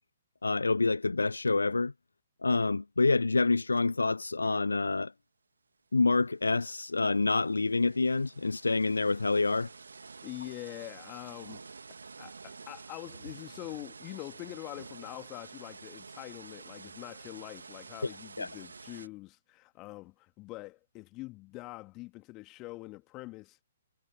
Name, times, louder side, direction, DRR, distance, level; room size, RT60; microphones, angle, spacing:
voice 1, 0.4-1.9 2.4-5.1 5.9-9.7 18.4-18.5, left 3 dB, 80° left, 0.3 m, -27 dB
sound 1, 6.1-6.2 6.5-19.1, right 4 dB, 75° right, 1.8 m, -49 dB
voice 2, 10.2-11.8 12.2-23.6, left 21 dB, 25° left, 2.2 m, -44 dB
figure-of-eight pair, 125°, 0 cm